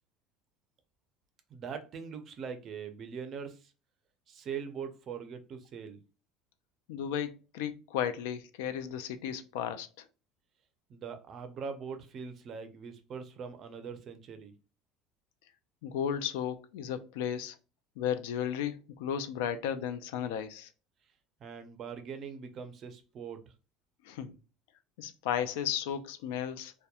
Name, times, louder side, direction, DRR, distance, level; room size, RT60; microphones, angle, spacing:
voice 1, 1.5-3.7 4.3-6.0 10.9-14.5 21.4-23.5, right 6 dB, 30° right, 0.4 m, -42 dB
voice 2, 6.9-9.9 15.8-17.6 18.0-20.7 24.1-24.3 25.0-26.7, left 9 dB, 90° left, 0.3 m, -34 dB
2.8 x 2.1 x 2.3 m
cardioid pair, 165°, 0 cm